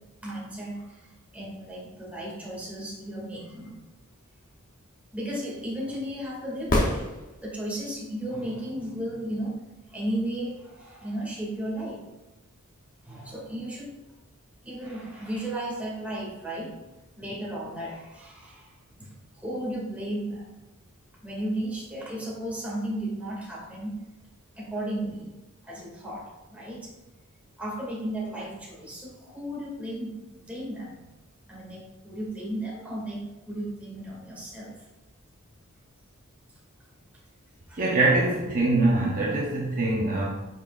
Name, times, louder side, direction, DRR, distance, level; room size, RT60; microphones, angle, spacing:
voice 1, 0.2-1.0 1.3-3.7 5.1-7.0 7.4-9.6 9.9-12.0 13.0-13.9 14.6-16.7 17.2-18.7 19.0-19.1 19.4-20.4 21.2-24.0 24.6-25.3 25.6-26.9 27.6-31.0 31.5-34.7 37.7-37.8, right 1 dB, 5° right, -6 dB, 2.4 m, -34 dB
sound 1, 6.7-7.8 11.7-11.8, left 1 dB, 40° left, 1.1 m, -26 dB
voice 2, 37.8-40.3, right 2 dB, 40° right, -3 dB, 1.0 m, -23 dB
9.1 x 5.7 x 2.5 m, 1.0 s
head